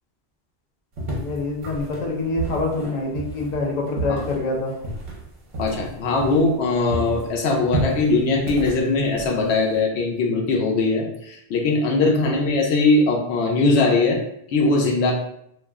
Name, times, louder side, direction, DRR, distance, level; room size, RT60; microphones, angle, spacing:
sound 1, 1.0-6.6 6.9-9.8, right 2 dB, 50° right, 0.8 m, -31 dB
voice 1, 1.2-4.7 12.1-12.5, left 3 dB, 50° left, -1 dB, 0.6 m, -26 dB
voice 2, 5.6-14.2 14.5-15.1, left 3 dB, 85° left, 0 dB, 0.9 m, -20 dB
2.4 x 2.0 x 3.4 m, 0.73 s
omnidirectional pair, 1.1 m